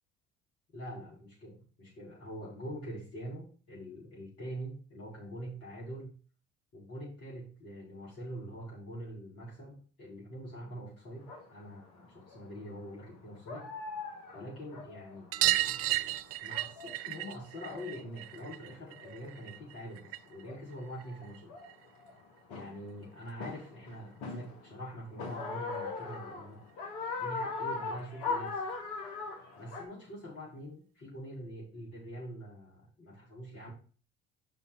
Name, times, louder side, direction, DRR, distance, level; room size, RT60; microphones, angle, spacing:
voice 1, 0.7-6.2 6.7-13.7 14.3-21.6 22.5-26.6 27.1-28.6 29.6-33.7, equal, 55° left, -5 dB, 4.5 m, -44 dB
sound 1, 11.3-11.4 12.3-12.6 13.0-13.1 13.5-16.1 16.3-17.0 17.4-18.2 18.9-19.3 20.1-20.2 20.5-22.2 22.5-22.9 23.4-24.8 25.2-29.8, left 4 dB, 70° left, 1.6 m, -40 dB
sound 2, 15.3-20.4 20.7-21.9 23.2-23.3 23.5-23.6 23.9-24.0 25.3-25.4 25.7-25.8 26.1-26.2 27.5-27.6 28.3-28.4, right 16 dB, 50° right, 0.5 m, -34 dB
5.9 x 5.5 x 5.7 m, 0.39 s
hypercardioid pair, 60°, 29 cm